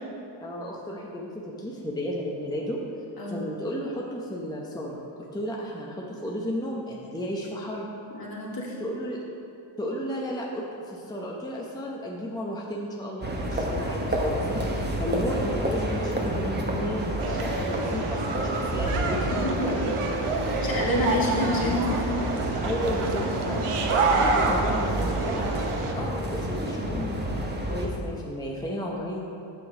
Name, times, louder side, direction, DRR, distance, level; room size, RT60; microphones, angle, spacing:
voice 1, 0.4-2.8 3.3-5.0 5.3-7.9 8.8-9.2 9.8-14.5 14.7-19.9 21.3-21.4 22.6-25.5 25.9-27.2 27.6-29.3, equal, 10° left, -3 dB, 0.9 m, -33 dB
voice 2, 8.1-8.7 19.4-19.8 20.6-22.2, left 1 dB, 45° left, -3 dB, 2.0 m, -29 dB
sound 1, 13.2-27.9, right 1 dB, 20° right, 1.1 m, -29 dB
sound 2, 17.2-25.9, right 3 dB, 85° right, 1.0 m, -28 dB
7.7 x 6.2 x 4.9 m, 2.8 s
cardioid pair, 80°, 50 cm